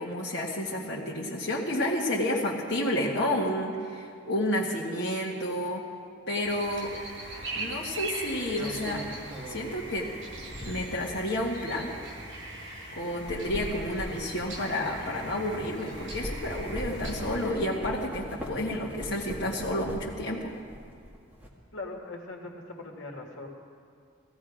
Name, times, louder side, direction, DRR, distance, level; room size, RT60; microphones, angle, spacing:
voice 1, 0.0-5.8 6.3-7.0 7.5-9.1 9.5-10.1 10.6-12.0 12.9-20.5, left 1 dB, 55° left, -4 dB, 1.5 m, -30 dB
sound 1, 6.4-17.5, right 2 dB, 75° right, 4.1 m, -40 dB
sound 2, 6.8-6.9 8.2-11.1 11.8-11.9 13.0-15.6 15.9-20.3 20.6-21.5, equal, 10° right, 1.8 m, -40 dB
voice 2, 21.7-23.5, left 2 dB, 80° left, 1 dB, 1.8 m, -40 dB
16.0 x 16.0 x 5.0 m, 2.2 s
head